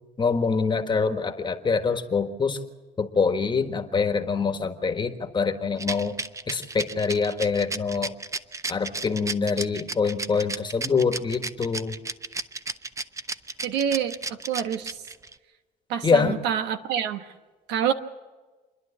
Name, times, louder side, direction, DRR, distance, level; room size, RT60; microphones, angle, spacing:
voice 1, 0.2-2.6 3.0-6.2 6.5-8.1 8.7-11.9 16.0-16.4, left 5 dB, 25° left, 7 dB, 1.5 m, -25 dB
Rattle, 5.8-15.3, right 3 dB, 20° right, 0.7 m, -33 dB
voice 2, 13.6-15.0 15.9-17.3 17.7-17.9, right 9 dB, 90° right, 9 dB, 1.3 m, -27 dB
28.5 x 11.0 x 8.6 m, 1.3 s
cardioid pair, 110°, 17 cm